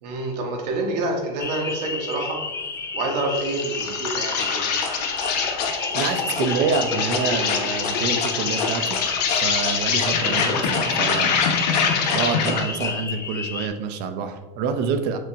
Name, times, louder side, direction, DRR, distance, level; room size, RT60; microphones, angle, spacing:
voice 1, 0.0-2.4 2.9-4.7, right 2 dB, 80° right, 1 dB, 1.2 m, -27 dB
sound 1, 1.4-13.7, left 4 dB, 15° left, 0.3 m, -31 dB
Insect, 3.4-12.7, left 6 dB, 80° left, 0.7 m, -25 dB
sound 2, 4.4-12.9, left 5 dB, 35° left, 0.8 m, -31 dB
voice 2, 5.9-9.0 9.4-11.3 12.1-15.2, right 5 dB, 55° right, 8 dB, 0.6 m, -27 dB
6.1 x 2.2 x 3.9 m, 1.2 s
supercardioid pair, 120°, 21 cm